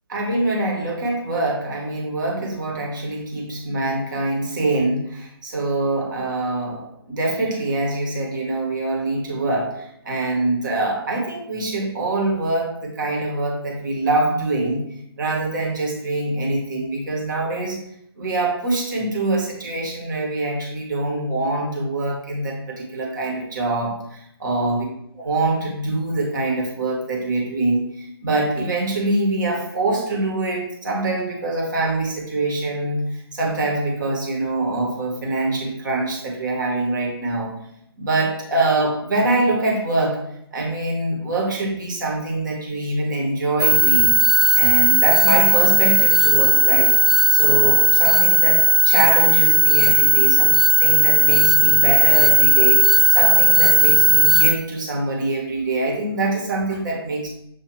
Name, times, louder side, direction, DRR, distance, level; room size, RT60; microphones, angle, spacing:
voice 1, 0.1-14.8 15.2-17.8 18.2-24.8 25.2-37.5 38.0-40.2 40.5-44.2 44.5-47.0 47.3-50.5 50.8-57.3, right 2 dB, 45° right, -1 dB, 1.4 m, -24 dB
sound 1, 43.6-54.5, right 3 dB, ahead, 0.3 m, -15 dB
6.3 x 2.7 x 3.1 m, 0.74 s
figure-of-eight pair, 140°, 14 cm